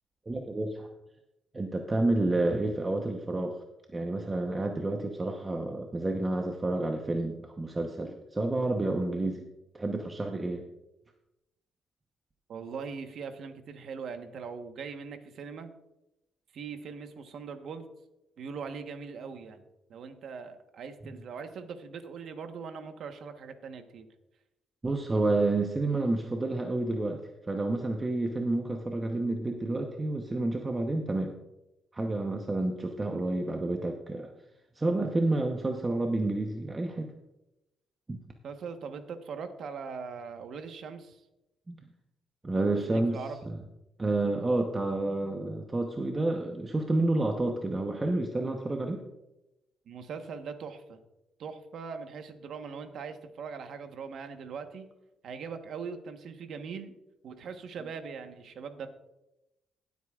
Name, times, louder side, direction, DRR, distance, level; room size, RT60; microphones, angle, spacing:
voice 1, 0.3-0.9 1.5-3.6 3.9-9.4 9.7-10.6 24.8-27.2 27.5-31.3 31.9-34.3 34.8-37.1 38.1-38.2 41.7-41.8 42.4-43.5 44.0-49.0, right 2 dB, 25° right, 3 dB, 0.9 m, -29 dB
voice 2, 12.5-15.7 16.5-17.8 18.4-19.6 19.9-24.1 38.4-41.2 42.5-43.4 49.9-51.0 51.4-54.9 55.2-56.9 57.2-58.9, right 5 dB, 65° right, 7 dB, 1.2 m, -41 dB
20.5 x 8.2 x 2.4 m, 0.93 s
cardioid pair, 90°, 0 cm